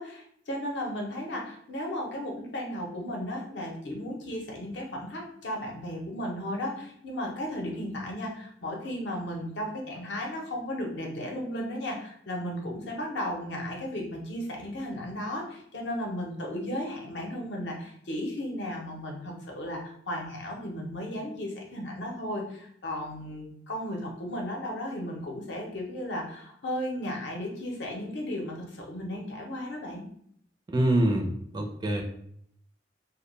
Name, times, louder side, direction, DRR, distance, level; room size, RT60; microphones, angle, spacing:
voice 1, 0.0-30.0, left 1 dB, 70° left, 0 dB, 0.7 m, -35 dB
voice 2, 30.7-32.0, right 1 dB, 25° right, 1 dB, 0.4 m, -25 dB
2.2 x 2.1 x 3.1 m, 0.67 s
head